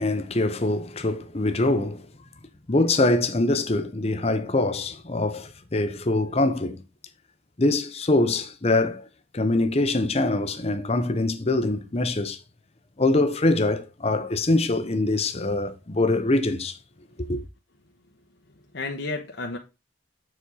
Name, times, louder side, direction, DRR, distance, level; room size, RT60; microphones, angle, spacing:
voice 1, 0.0-2.0 2.7-6.8 7.6-9.1 9.3-12.4 13.0-16.8 17.3-17.4, left 2 dB, 35° left, 0.8 m, -23 dB
voice 2, 18.5-19.6, left 3 dB, 65° left, 0.9 m, -33 dB
7.0 x 4.4 x 4.7 m
head